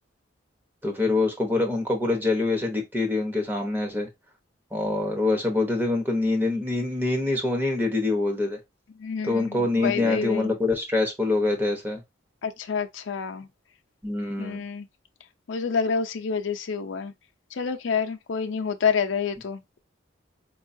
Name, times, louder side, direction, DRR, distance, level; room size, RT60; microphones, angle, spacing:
voice 1, 0.8-4.1 4.7-8.6 9.2-12.0 14.0-14.6, left 2 dB, 10° right, 0.8 m, -25 dB
voice 2, 9.0-10.5 12.4-13.5 14.4-14.9 15.5-17.1 17.6-19.6, left 6 dB, 75° left, 0.5 m, -28 dB
4.6 x 2.3 x 2.6 m
head